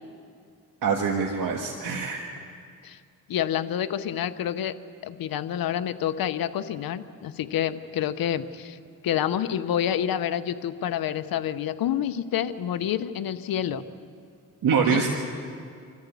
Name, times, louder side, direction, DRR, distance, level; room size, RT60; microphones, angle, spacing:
voice 1, 0.8-2.2 14.6-15.1, right 6 dB, 75° right, 1 dB, 1.7 m, -24 dB
voice 2, 3.3-4.7 5.0-8.8 9.0-13.8 14.9-15.0, left 10 dB, 90° left, 11 dB, 0.9 m, -28 dB
26.0 x 14.0 x 8.3 m, 2.3 s
cardioid pair, 85°, 34 cm